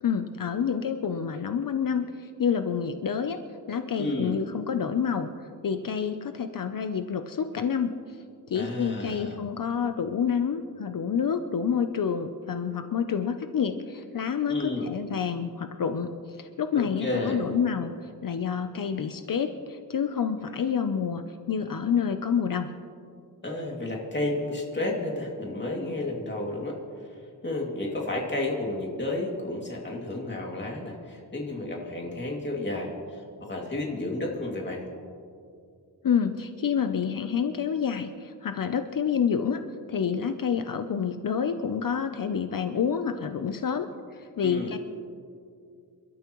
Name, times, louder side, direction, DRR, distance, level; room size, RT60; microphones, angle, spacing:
voice 1, 0.0-3.4 3.7-5.3 5.6-7.9 8.5-14.6 14.8-17.9 18.2-22.7 36.0-39.6 39.9-44.8, left 7 dB, 60° left, 8 dB, 0.6 m, -28 dB
voice 2, 4.0-4.4 8.5-9.4 14.5-14.9 16.8-17.4 23.4-26.8 27.4-34.8 44.4-44.7, left 2 dB, 30° left, -1 dB, 2.5 m, -31 dB
28.0 x 12.5 x 3.1 m, 2.3 s
wide cardioid pair, 150°, 38 cm